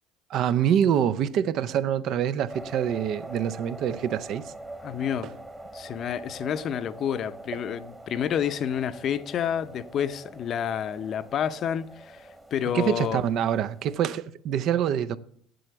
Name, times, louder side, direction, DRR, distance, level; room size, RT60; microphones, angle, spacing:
voice 1, 0.3-4.4 5.2-5.3 12.7-15.2, right 9 dB, 60° right, 0.5 m, -25 dB
sound 1, 2.5-14.1, right 2 dB, 10° right, 1.2 m, -44 dB
voice 2, 4.8-5.3 5.7-13.2, left 9 dB, 50° left, 0.6 m, -29 dB
7.7 x 7.6 x 7.0 m
supercardioid pair, 100°, 0 cm